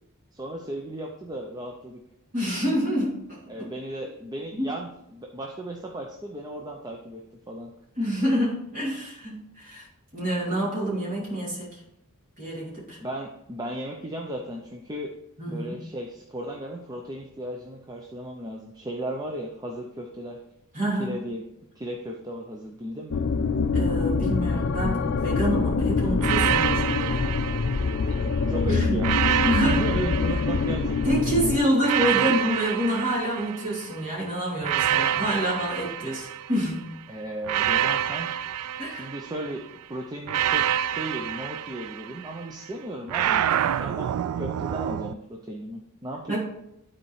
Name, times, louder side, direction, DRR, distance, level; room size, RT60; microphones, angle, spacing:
voice 1, 0.3-2.0 3.5-7.7 13.0-15.1 15.5-20.4 21.0-21.4 21.8-23.2 28.5-31.5 32.0-32.4 37.1-38.3 38.9-46.4, right 1 dB, 20° right, 1 dB, 0.6 m, -35 dB
voice 2, 2.3-3.7 4.5-4.7 8.0-9.8 10.1-11.8 12.4-13.0 15.4-15.8 20.7-21.1 23.7-27.3 28.7-29.0 29.4-29.8 31.0-36.9 38.8-39.1 46.3-46.4, equal, 35° right, -5 dB, 2.9 m, -27 dB
sound 1, 23.1-31.6, left 4 dB, 55° left, 0.4 m, -25 dB
sound 2, 26.2-28.4 29.0-31.2 31.8-34.0 34.6-36.8 37.4-39.6 40.3-42.4 43.1-45.1, right 10 dB, 80° right, 0.3 m, -27 dB
12.0 x 4.4 x 3.2 m, 0.83 s
head